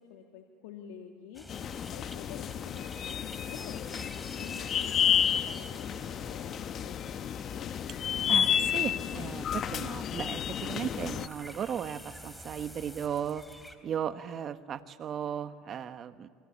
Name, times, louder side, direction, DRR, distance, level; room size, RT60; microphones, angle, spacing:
voice 1, 0.0-7.7, left 8 dB, 85° left, 3 dB, 2.0 m, -49 dB
sound 1, 1.3-13.8, left 1 dB, 5° left, 3.0 m, -49 dB
sound 2, 1.5-11.3, left 9 dB, 45° left, 1.0 m, -31 dB
sound 3, 4.8-8.6, left 5 dB, 60° left, 6.1 m, -61 dB
voice 2, 8.3-13.4 13.8-16.3, right 8 dB, 45° right, 11 dB, 1.2 m, -36 dB
28.5 x 23.0 x 8.7 m, 2.1 s
supercardioid pair, 100°, 0 cm